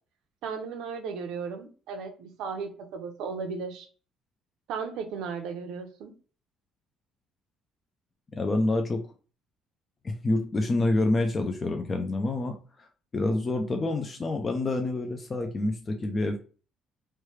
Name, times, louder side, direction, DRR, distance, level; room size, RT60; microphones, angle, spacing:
voice 1, 0.4-3.9 4.7-6.1, right 5 dB, 75° right, 6 dB, 0.7 m, -35 dB
voice 2, 8.4-9.1 10.0-12.9 13.1-16.4, left 2 dB, 25° left, 5 dB, 0.4 m, -27 dB
3.2 x 2.3 x 3.1 m, 0.37 s
cardioid pair, 155°, 0 cm